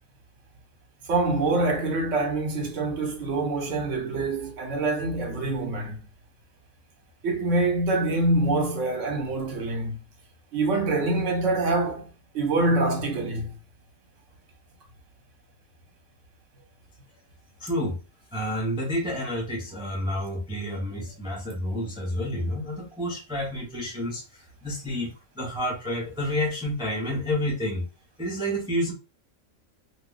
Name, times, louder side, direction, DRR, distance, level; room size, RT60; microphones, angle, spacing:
voice 1, 1.1-6.0 7.2-10.0 10.5-12.1 12.3-13.5, right 2 dB, 65° right, 1.2 m, -25 dB
voice 2, 17.6-18.0 18.3-27.8 28.2-28.9, left 1 dB, 5° right, 0.6 m, -29 dB
2.8 x 2.2 x 3.8 m
omnidirectional pair, 1.4 m